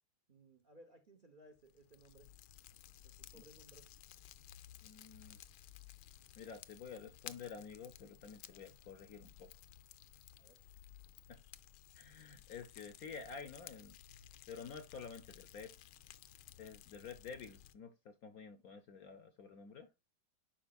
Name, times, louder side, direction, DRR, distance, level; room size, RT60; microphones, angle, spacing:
voice 1, 0.3-2.3 3.0-3.9 10.4-10.6, right 1 dB, 60° right, 0.5 m, -61 dB
Fire, 1.6-17.7, left 12 dB, 80° left, 1.4 m, -57 dB
voice 2, 4.8-5.4 6.4-9.5 11.3-11.4 11.9-14.0 14.5-15.9 16.6-19.9, left 6 dB, 65° left, 0.9 m, -50 dB
10.5 x 5.0 x 2.3 m
omnidirectional pair, 2.3 m